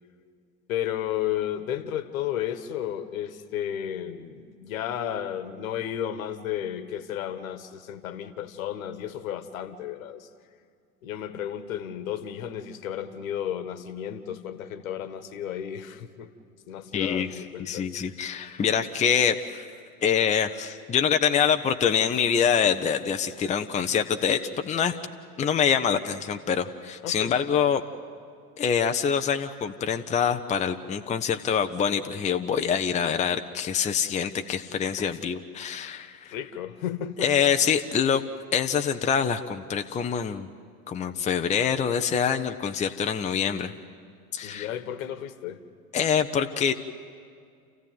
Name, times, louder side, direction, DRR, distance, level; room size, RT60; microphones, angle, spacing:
voice 1, 0.7-10.3 11.0-16.3 16.7-17.9 27.0-27.3 35.0-35.2 36.2-37.3 44.4-45.6, left 10 dB, 60° left, 13 dB, 1.5 m, -33 dB
voice 2, 16.9-19.7 20.0-24.9 25.4-27.8 28.6-36.3 37.2-38.2 38.5-40.5 40.9-43.7 44.3-44.7 45.9-46.7, left 7 dB, 15° left, 6 dB, 0.8 m, -25 dB
29.0 x 15.0 x 9.5 m, 2.2 s
figure-of-eight pair, 80°, 45 cm